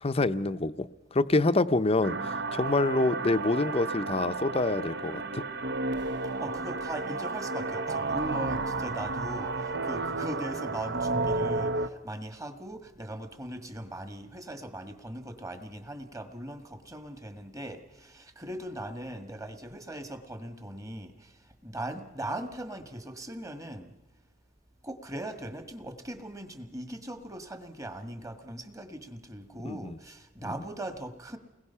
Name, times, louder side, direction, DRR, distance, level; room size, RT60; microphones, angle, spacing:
voice 1, 0.0-2.2 2.5-5.4 29.6-30.0 30.4-30.5, left 2 dB, 30° left, 13 dB, 0.7 m, -26 dB
sound 1, 2.0-11.9, right 3 dB, 60° right, 1.0 m, -32 dB
voice 2, 6.4-23.9 24.8-31.4, right 1 dB, 20° right, 7 dB, 1.6 m, -39 dB
30.0 x 21.0 x 5.6 m, 1.0 s
head